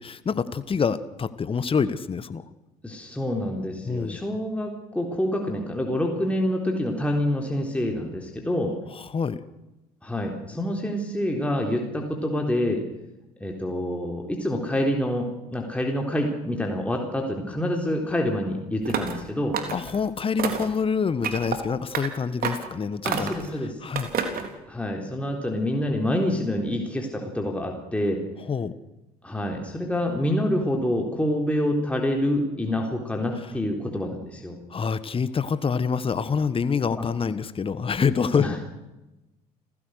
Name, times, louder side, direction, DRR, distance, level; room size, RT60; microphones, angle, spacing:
voice 1, 0.0-2.4 3.9-4.2 8.9-9.4 19.7-23.3 23.8-24.1 28.5-28.7 34.7-38.6, left 6 dB, 25° left, 15 dB, 1.4 m, -26 dB
voice 2, 2.8-8.8 10.0-12.8 13.4-19.6 23.0-23.7 24.7-28.2 29.2-34.6 37.0-37.1 38.4-38.6, left 1 dB, 5° left, 0 dB, 3.9 m, -27 dB
sound 1, 18.8-19.2 19.5-20.0 20.4-20.8 21.2-21.6 21.9-22.1 22.4-22.7 23.0-23.5 23.9-24.5, right 7 dB, 45° right, 3.7 m, -28 dB
30.0 x 16.5 x 6.6 m, 1.0 s
figure-of-eight pair, 55°, 20 cm